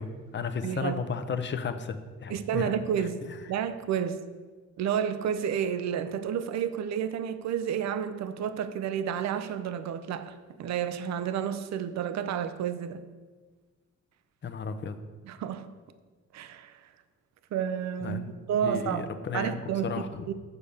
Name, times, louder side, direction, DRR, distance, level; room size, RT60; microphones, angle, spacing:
voice 1, 0.0-2.7 14.4-15.0 18.0-18.3 18.6-19.6 19.8-20.1, left 5 dB, 40° left, 0.7 m, -33 dB
voice 2, 0.6-1.0 2.3-4.2 4.8-13.0 15.2-15.7 16.3-16.9 17.5-18.2 18.5-20.3, right 8 dB, 65° right, 0.6 m, -31 dB
6.7 x 5.0 x 7.1 m
cardioid pair, 90°, 30 cm